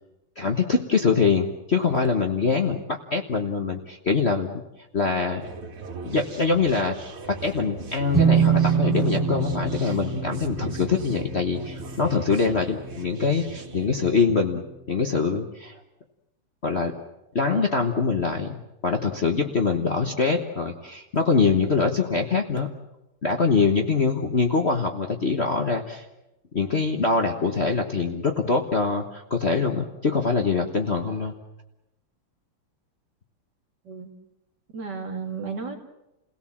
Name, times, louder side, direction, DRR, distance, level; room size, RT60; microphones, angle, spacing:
voice 1, 0.4-4.6 4.9-5.4 6.0-15.8 16.6-16.9 17.3-22.7 23.2-26.0 26.5-31.3, left 4 dB, 35° left, 3 dB, 1.2 m, -24 dB
sound 1, 5.4-14.2, right 4 dB, 75° right, 3.1 m, -39 dB
sound 2, 8.1-13.7, right 6 dB, 10° right, 0.9 m, -25 dB
voice 2, 34.7-35.8, right 5 dB, 50° right, 3 dB, 2.7 m, -33 dB
29.5 x 17.5 x 7.3 m, 0.92 s
omnidirectional pair, 2.4 m